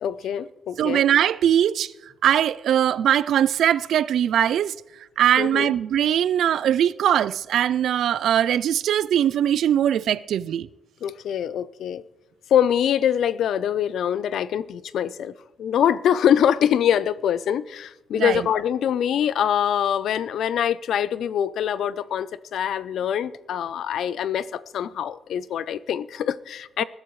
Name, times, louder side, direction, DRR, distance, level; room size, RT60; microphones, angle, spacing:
voice 1, 0.0-1.0 5.4-5.7 11.0-12.0 12.5-15.3 15.6-26.8, left 9 dB, 80° left, 0.5 m, -24 dB
voice 2, 0.8-1.9 2.2-4.7 5.2-10.7 18.1-18.4, right 10 dB, 80° right, 0.4 m, -21 dB
21.0 x 12.0 x 3.2 m
wide cardioid pair, 155°, 0 cm